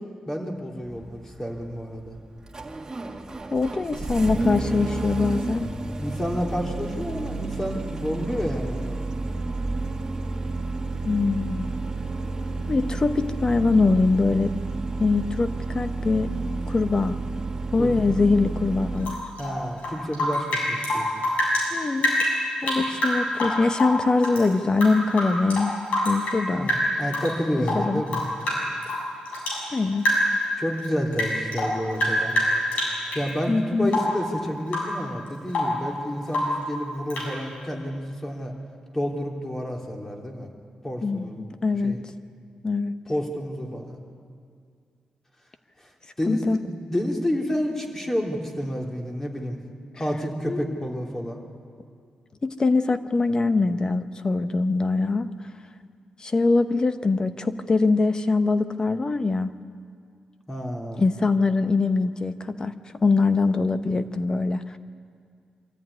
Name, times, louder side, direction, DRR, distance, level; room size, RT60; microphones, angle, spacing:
voice 1, 0.3-2.2 6.0-9.1 17.8-18.0 19.4-21.1 26.5-28.2 30.6-32.4 33.1-38.5 38.9-40.5 40.8-41.4 41.8-42.0 43.1-44.0 46.2-49.6 50.0-51.4 60.5-61.0, equal, 15° left, 0 dB, 3.2 m, -30 dB
Engine starting, 0.9-19.2, right 3 dB, 25° right, 1.8 m, -31 dB
voice 2, 3.5-5.7 11.0-11.7 12.7-14.5 15.0-16.3 16.7-17.2 17.7-19.2 21.7-22.2 22.6-25.7 26.0-26.7 27.7-28.0 29.7-30.1 33.5-34.0 41.0-41.3 41.6-42.0 42.6-42.9 46.3-46.6 50.5-50.8 52.4-55.3 56.2-59.5 61.0-62.7 63.0-64.8, left 3 dB, 35° left, 10 dB, 1.0 m, -23 dB
Rain / Drip, 19.0-21.7 22.0-24.4 24.7-26.4 26.7-27.3 27.6-29.6 30.0-30.5 30.8-33.3 33.9-34.2 34.7-35.0 35.3-35.8 36.3-36.6 37.1-37.3, left 1 dB, 80° left, 7.4 m, -26 dB
24.0 x 14.0 x 9.7 m, 2.2 s
cardioid pair, 95°, 2 cm